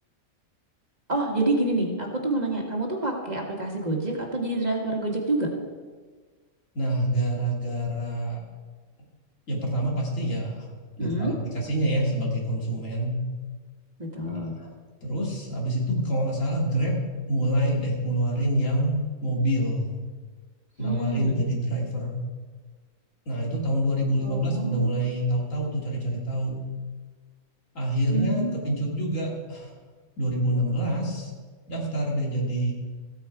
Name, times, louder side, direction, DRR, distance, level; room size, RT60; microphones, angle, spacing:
voice 1, 1.1-5.5 11.0-11.3 14.0-14.6 20.8-21.4 24.2-25.0 28.1-28.7, right 2 dB, 30° right, 0 dB, 1.7 m, -28 dB
voice 2, 6.7-8.4 9.5-10.7 11.0-13.2 14.2-14.7 15.0-16.9 17.3-20.0 20.8-22.2 23.3-26.5 27.7-29.7 30.2-31.3 31.7-32.7, right 1 dB, 75° left, -2 dB, 2.8 m, -26 dB
15.0 x 8.8 x 4.7 m, 1.4 s
omnidirectional pair, 1.4 m